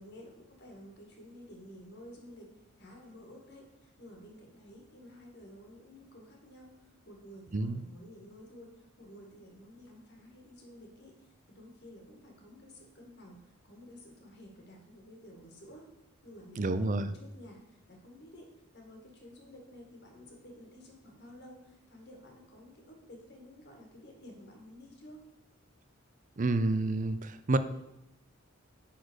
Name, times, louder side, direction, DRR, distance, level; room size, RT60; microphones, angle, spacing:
voice 1, 0.0-2.5 2.8-15.9 16.2-18.5 18.7-25.2, equal, 55° left, 1 dB, 2.1 m, -52 dB
voice 2, 16.6-17.1 26.4-27.6, right 2 dB, 40° right, 11 dB, 0.5 m, -29 dB
10.0 x 4.2 x 6.3 m, 0.88 s
head